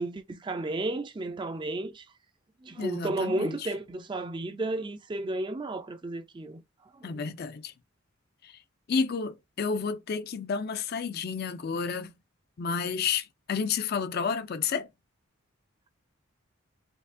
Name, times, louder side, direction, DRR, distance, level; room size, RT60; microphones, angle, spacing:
voice 1, 0.0-2.1 2.6-6.6 6.9-7.2, right 2 dB, 20° right, 0.4 m, -33 dB
voice 2, 2.8-3.7 7.0-7.7 8.4-8.5 8.9-12.1 12.6-14.9, left 5 dB, 50° left, 0.4 m, -31 dB
4.4 x 2.7 x 2.6 m
head